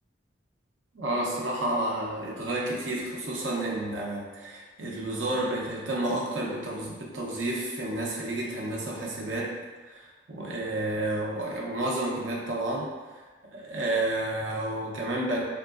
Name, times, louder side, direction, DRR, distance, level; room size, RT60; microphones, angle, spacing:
voice 1, 0.9-9.6 9.9-12.9 13.5-15.4, right 1 dB, 75° right, -3 dB, 0.7 m, -30 dB
3.4 x 3.0 x 2.4 m, 1.3 s
head